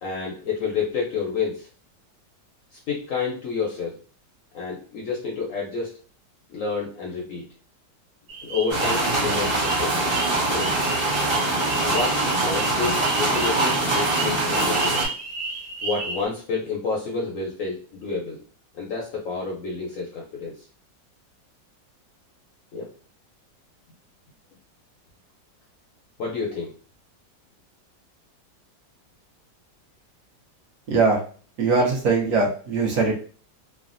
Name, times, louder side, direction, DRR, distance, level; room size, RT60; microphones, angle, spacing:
voice 1, 0.0-1.7 2.7-4.0 4.5-6.0 6.5-7.5 8.4-10.0 10.5-10.7 11.8-15.1 15.8-18.4 18.7-20.7 22.7-22.9 26.2-26.7, left 4 dB, 70° left, -2 dB, 0.8 m, -29 dB
sound 1, 8.3-16.3, right 3 dB, 85° right, 1.6 m, -33 dB
sound 2, 8.7-15.1, right 2 dB, 30° right, 0.5 m, -23 dB
voice 2, 30.9-31.2 31.6-33.1, right 4 dB, 65° right, -2 dB, 1.1 m, -21 dB
3.3 x 2.1 x 2.5 m, 0.40 s
omnidirectional pair, 1.9 m